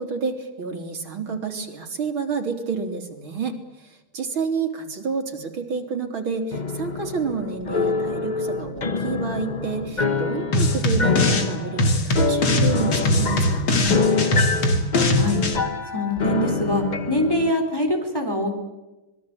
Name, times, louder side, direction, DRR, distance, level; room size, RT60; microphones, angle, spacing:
voice 1, 0.0-14.0, right 5 dB, 75° right, 3 dB, 4.2 m, -29 dB
sound 1, 6.5-17.5, left 4 dB, 30° left, 1.0 m, -26 dB
sound 2, 10.5-11.5 11.8-15.6, left 1 dB, 75° left, 3.4 m, -21 dB
voice 2, 15.9-18.5, left 1 dB, 10° left, 4 dB, 3.9 m, -24 dB
26.0 x 21.5 x 8.9 m, 1.1 s
omnidirectional pair, 2.3 m